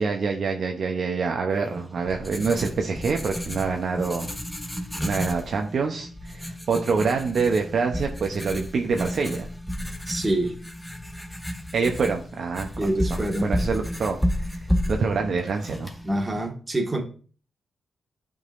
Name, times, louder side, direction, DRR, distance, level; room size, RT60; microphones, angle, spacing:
voice 1, 0.0-4.3 5.0-9.5 11.7-14.2 14.9-15.9, right 5 dB, 65° right, 3 dB, 0.7 m, -26 dB
Writing, 1.7-16.5, equal, 5° left, 1.1 m, -32 dB
voice 2, 10.1-10.6 12.8-13.5 16.0-17.0, right 1 dB, 25° right, 2 dB, 1.6 m, -26 dB
11.0 x 3.9 x 2.5 m, 0.40 s
supercardioid pair, 45°, 0 cm